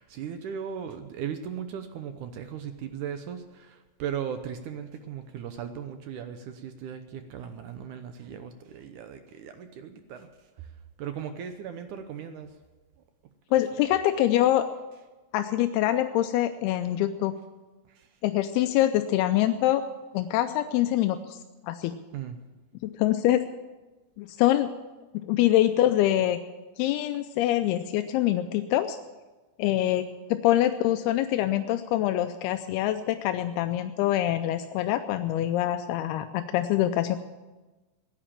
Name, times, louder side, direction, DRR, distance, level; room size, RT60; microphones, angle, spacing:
voice 1, 0.0-10.3 10.6-10.7 11.0-12.5 17.9-18.1 22.1-22.4, right 8 dB, 75° right, 8 dB, 1.9 m, -37 dB
voice 2, 13.5-14.7 15.3-17.4 18.2-19.8 20.1-21.4 21.6-22.0 22.8-23.5 24.2-24.7 25.2-26.4 26.8-29.0 29.6-37.2, left 13 dB, 85° left, 8 dB, 2.6 m, -25 dB
16.5 x 10.0 x 7.3 m, 1.2 s
omnidirectional pair, 4.5 m